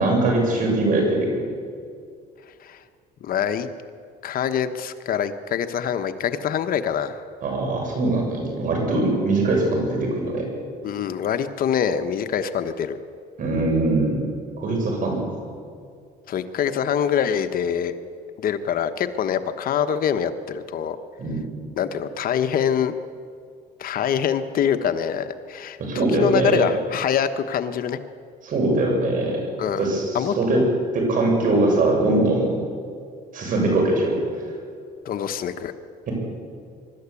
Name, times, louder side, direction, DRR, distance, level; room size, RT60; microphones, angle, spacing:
voice 1, 0.0-1.4 7.4-10.5 13.4-14.3 14.6-15.2 21.2-21.4 25.8-26.7 28.4-29.4 29.8-30.7 30.9-32.6 33.3-34.2 36.1-36.2, right 2 dB, 50° right, 0 dB, 7.2 m, -21 dB
voice 2, 3.2-3.7 4.2-7.2 10.8-13.0 16.3-17.9 18.4-21.0 21.8-22.9 23.8-28.0 29.6-29.9 30.1-30.3 35.0-35.7, left 8 dB, 60° left, 9 dB, 1.2 m, -24 dB
23.5 x 13.0 x 8.5 m, 2.2 s
cardioid pair, 110°, 17 cm